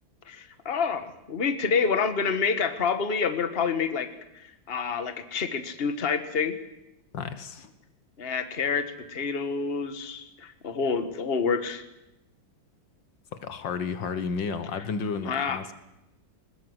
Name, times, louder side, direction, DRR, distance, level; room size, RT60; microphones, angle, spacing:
voice 1, 0.3-4.1 4.3-6.5 8.2-11.8 15.2-15.6, left 5 dB, 30° left, 9 dB, 1.6 m, -28 dB
voice 2, 7.1-7.7 13.3-15.7, left 5 dB, 75° left, 11 dB, 2.0 m, -32 dB
21.0 x 20.5 x 8.0 m, 0.89 s
omnidirectional pair, 2.1 m